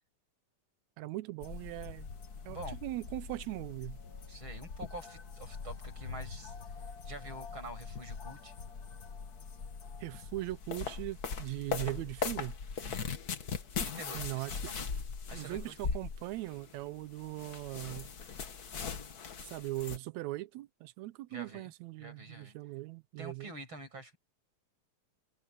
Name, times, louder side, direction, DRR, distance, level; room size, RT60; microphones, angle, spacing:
voice 1, 1.0-2.1 2.5-4.0 10.0-12.6 14.1-14.6 15.3-18.1 19.4-23.5, right 18 dB, 80° right, 1.9 m, -40 dB
sound 1, 1.4-20.0, left 5 dB, 40° left, 1.5 m, -41 dB
voice 2, 2.5-2.8 4.3-6.5 7.0-8.5 12.8-13.2 13.8-14.9 15.3-15.8 21.3-21.7 22.0-22.5 23.2-24.2, right 2 dB, 40° right, 7.8 m, -47 dB
omnidirectional pair, 3.3 m